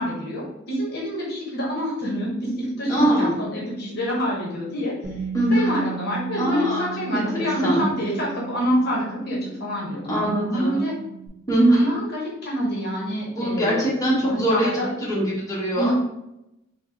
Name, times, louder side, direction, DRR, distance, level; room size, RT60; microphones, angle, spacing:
voice 1, 0.0-5.0 5.5-10.9 11.7-13.8 14.2-14.9 15.8-15.9, equal, 50° left, -4 dB, 0.9 m, -27 dB
voice 2, 2.9-3.3 5.3-5.7 6.4-6.9 7.1-7.9 10.1-10.8 11.5-11.9 13.4-14.7 15.0-15.9, right 1 dB, 15° left, -7 dB, 1.0 m, -22 dB
Bass guitar, 5.0-11.3, right 10 dB, 75° right, 0.7 m, -37 dB
3.7 x 2.1 x 3.8 m, 0.86 s
head